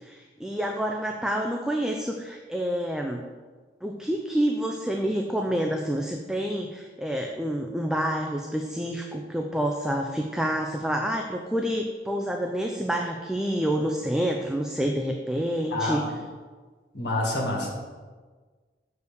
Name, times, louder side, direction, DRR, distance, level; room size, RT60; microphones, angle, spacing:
voice 1, 0.0-3.2 3.8-16.1, equal, 5° right, 2 dB, 0.4 m, -28 dB
voice 2, 16.9-17.8, left 2 dB, 65° left, -1 dB, 1.9 m, -27 dB
6.8 x 4.6 x 6.8 m, 1.4 s
head